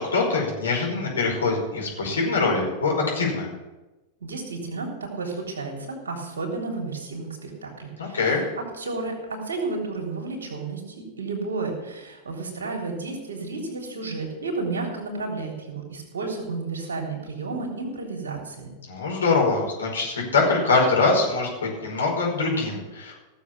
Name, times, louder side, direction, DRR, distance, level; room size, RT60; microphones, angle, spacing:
voice 1, 0.0-3.5 8.0-8.4 18.9-23.2, left 3 dB, 70° left, -1 dB, 5.2 m, -23 dB
voice 2, 4.2-18.7, right 3 dB, 70° right, 1 dB, 3.5 m, -32 dB
17.0 x 7.3 x 7.3 m, 1.1 s
figure-of-eight pair, 90°, 0 cm